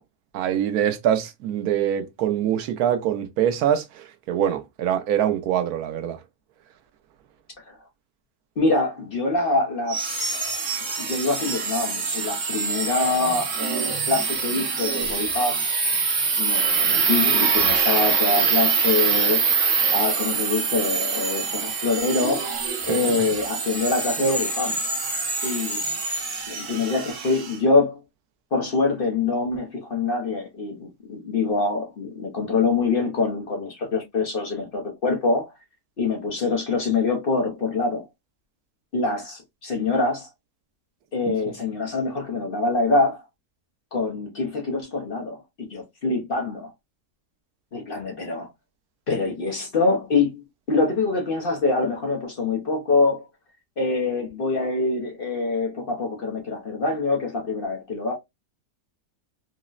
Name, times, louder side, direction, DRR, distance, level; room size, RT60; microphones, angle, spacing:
voice 1, 0.3-6.2 22.9-23.3 41.3-41.4, right 10 dB, 90° right, 1.1 m, -24 dB
voice 2, 8.6-10.0 10.3-10.6 11.0-15.7 16.4-19.4 19.9-22.5 22.9-24.8 25.4-25.8 26.5-28.0 28.5-35.5 36.0-38.0 38.9-40.3 41.1-43.2 43.9-46.7 47.7-48.5 49.1-50.4 50.7-53.2 53.8-58.1, left 3 dB, 50° left, 0.7 m, -25 dB
sound 1, 9.9-27.6, right 5 dB, 60° right, 1.1 m, -24 dB
3.8 x 2.0 x 2.3 m
omnidirectional pair, 1.5 m